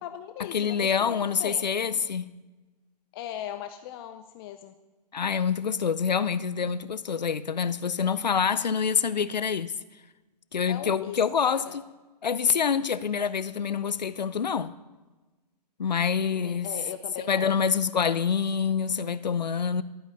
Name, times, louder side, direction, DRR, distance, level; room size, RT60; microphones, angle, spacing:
voice 1, 0.0-1.7 3.1-4.8 10.7-11.8 16.2-17.5, left 10 dB, 35° left, 0.6 m, -39 dB
voice 2, 0.5-2.3 5.1-9.7 10.5-11.7 12.2-14.7 15.8-16.7 17.3-19.8, left 6 dB, 90° left, 0.6 m, -26 dB
12.5 x 8.9 x 6.7 m
hypercardioid pair, 130°, 21 cm